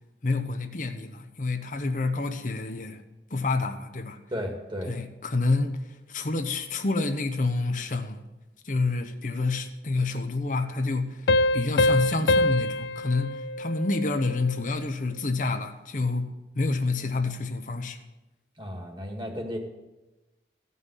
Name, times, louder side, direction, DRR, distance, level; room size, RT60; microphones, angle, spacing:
voice 1, 0.2-3.0 3.3-4.2 4.9-8.2 8.6-16.3 16.6-18.0, left 3 dB, 45° left, 6 dB, 0.8 m, -28 dB
voice 2, 4.3-4.9 18.6-19.6, equal, 25° right, 3 dB, 1.9 m, -34 dB
Piano, 11.3-14.6, left 2 dB, 70° left, 0.5 m, -25 dB
15.0 x 5.5 x 9.8 m, 1.1 s
head